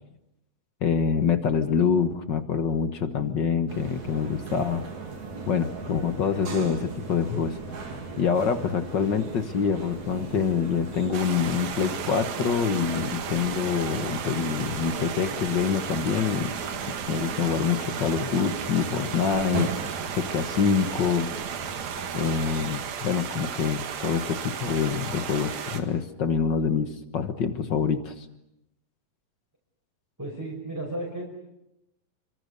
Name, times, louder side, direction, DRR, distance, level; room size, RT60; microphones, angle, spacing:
voice 1, 0.8-4.8 5.5-7.6 8.2-16.5 17.1-21.3 22.1-28.2, left 6 dB, 60° left, 9 dB, 1.2 m, -26 dB
sound 1, 3.7-22.7, right 4 dB, 60° right, 4.5 m, -38 dB
sound 2, 11.1-25.8, right 8 dB, 85° right, 3.7 m, -35 dB
voice 2, 30.2-31.2, right 1 dB, 5° right, -2 dB, 5.4 m, -33 dB
29.5 x 25.0 x 6.8 m, 0.86 s
omnidirectional pair, 3.9 m